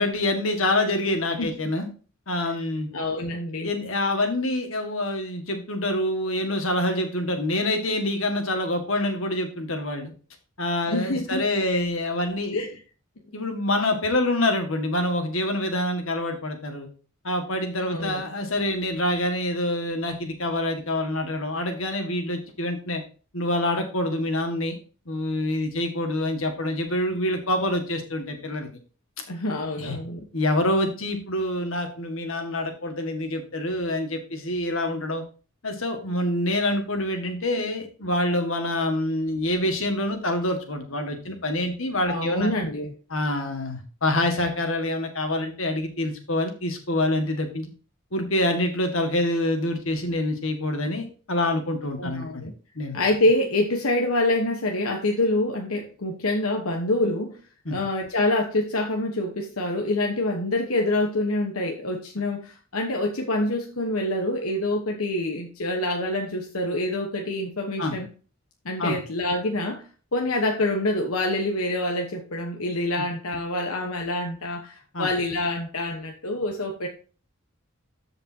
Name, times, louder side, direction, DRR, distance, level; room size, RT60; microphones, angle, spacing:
voice 1, 0.0-1.9 2.3-2.9 3.6-10.1 10.6-12.6 13.3-16.9 17.2-23.0 23.3-24.8 25.1-28.7 29.8-30.0 30.3-35.2 35.6-42.5 43.1-47.7 48.1-52.5 52.8-53.0 57.7-57.8 67.8-68.0 68.8-69.0 73.0-73.1 74.9-75.1, left 1 dB, 75° left, 5 dB, 1.9 m, -26 dB
voice 2, 2.9-3.7 10.9-11.4 12.5-12.7 17.9-18.2 29.3-30.2 42.1-42.9 52.0-52.5 52.9-57.4 57.7-68.1 68.6-69.9 70.1-76.9, left 1 dB, 90° left, 2 dB, 1.2 m, -26 dB
13.5 x 5.3 x 2.8 m, 0.37 s
head